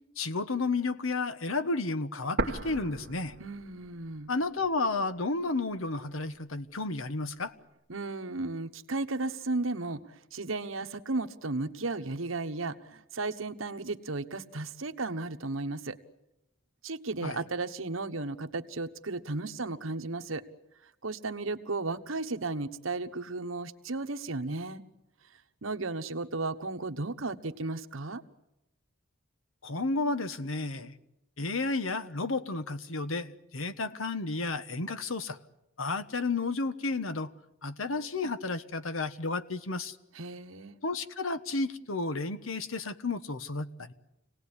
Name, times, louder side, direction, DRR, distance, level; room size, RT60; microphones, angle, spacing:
voice 1, 0.2-3.3 4.3-7.5 17.2-17.4 29.6-30.9 31.4-35.4 35.8-37.3 37.6-40.0 40.8-43.9, left 3 dB, 90° left, 12 dB, 1.3 m, -32 dB
sound 1, 2.4-4.3 4.6-4.7 5.4-6.4, right 2 dB, 50° right, 1.4 m, -36 dB
voice 2, 3.4-4.3 7.9-10.0 10.3-16.0 16.8-20.4 21.0-24.8 25.6-28.2 40.1-40.8, right 3 dB, 85° right, 9 dB, 1.3 m, -34 dB
26.5 x 18.5 x 9.8 m, 0.88 s
head